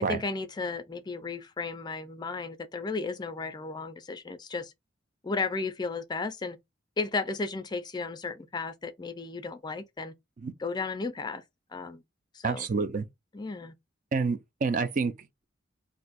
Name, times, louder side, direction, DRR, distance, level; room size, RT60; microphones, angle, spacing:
voice 1, 0.1-4.7 5.2-6.6 7.0-10.1 10.6-11.4 11.7-12.0 12.3-12.6 13.3-13.7, left 4 dB, 20° left, 0.4 m, -34 dB
voice 2, 12.4-13.1 14.1-15.4, right 4 dB, 45° right, 0.4 m, -29 dB
2.6 x 2.3 x 4.0 m
head